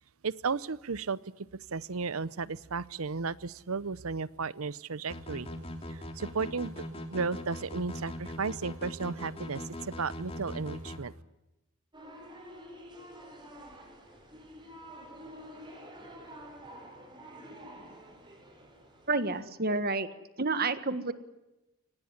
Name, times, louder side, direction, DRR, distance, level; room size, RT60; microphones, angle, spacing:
voice 1, 0.2-1.5 1.7-5.5 5.9-6.7 7.1-11.1, right 4 dB, 85° right, 19 dB, 0.8 m, -34 dB
sound 1, 5.1-11.0, left 1 dB, 30° left, 3.1 m, -40 dB
sound 2, 11.9-19.5, equal, 20° right, 5.6 m, -49 dB
voice 2, 19.1-20.1 20.4-21.1, right 3 dB, 45° right, 12 dB, 1.6 m, -29 dB
24.5 x 19.0 x 9.8 m, 0.98 s
head